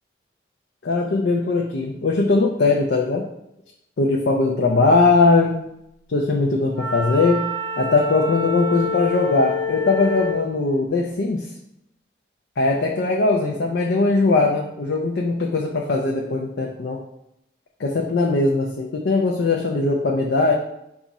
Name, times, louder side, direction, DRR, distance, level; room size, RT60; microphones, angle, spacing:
voice 1, 0.8-3.3 4.0-5.6 6.1-7.5 7.8-11.5 12.6-17.0 17.8-20.5, left 3 dB, 75° left, 0 dB, 0.4 m, -20 dB
Wind instrument woodwind instrument, 6.7-10.5, left 2 dB, 10° left, 1.1 m, -27 dB
4.9 x 2.4 x 4.0 m, 0.82 s
head